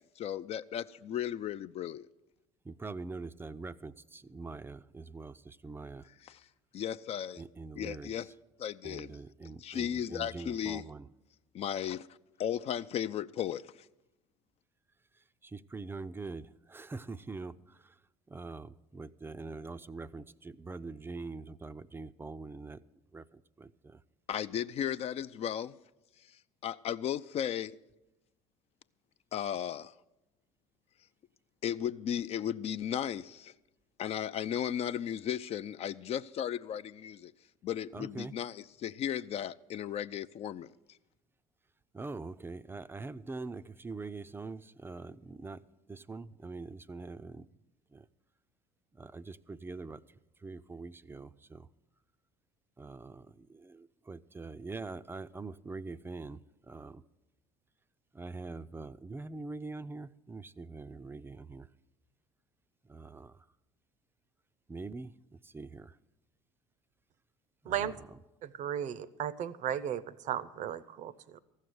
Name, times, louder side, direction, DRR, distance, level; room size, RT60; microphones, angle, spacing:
voice 1, 0.0-2.1 6.2-6.4 6.7-7.4 7.8-8.3 8.6-9.2 9.6-10.8 11.5-12.1 12.4-13.8 24.3-25.8 26.6-27.8 29.3-29.9 31.6-33.5 34.0-37.3 37.6-40.7, left 9 dB, 45° left, 0.4 m, -35 dB
voice 2, 2.7-6.0 7.4-8.1 8.8-11.1 15.5-17.5 18.3-22.8 23.1-23.2 23.6-24.0 37.9-38.3 41.9-45.6 45.9-47.5 47.9-48.0 49.0-50.0 50.4-51.7 52.8-56.4 56.7-57.0 58.1-61.7 62.9-63.3 64.7-65.1 65.4-65.9 67.6-67.9, right 3 dB, 15° right, 0.5 m, -43 dB
voice 3, 67.6-68.0 68.4-71.4, right 10 dB, 55° right, 0.7 m, -35 dB
14.5 x 6.5 x 9.3 m
hypercardioid pair, 65°, 15 cm